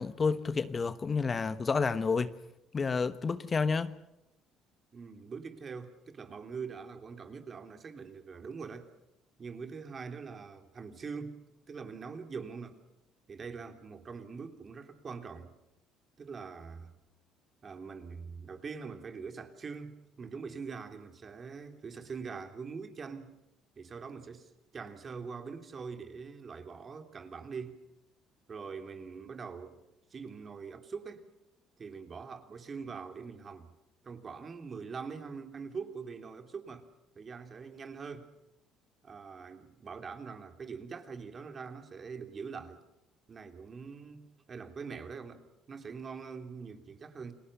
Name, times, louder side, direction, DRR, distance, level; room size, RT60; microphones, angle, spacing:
voice 1, 0.0-2.3 2.7-3.9, left 5 dB, 35° left, 1.1 m, -30 dB
voice 2, 4.9-8.9 9.4-11.4 11.7-12.8 13.3-15.5 16.2-16.9 17.6-23.4 23.8-27.8 28.5-29.8 30.1-31.3 31.8-33.7 34.0-36.9 37.1-38.3 39.0-42.8 43.3-45.4 45.7-47.3, right 5 dB, 40° right, 3.2 m, -43 dB
29.5 x 19.5 x 6.8 m
supercardioid pair, 80°, 0 cm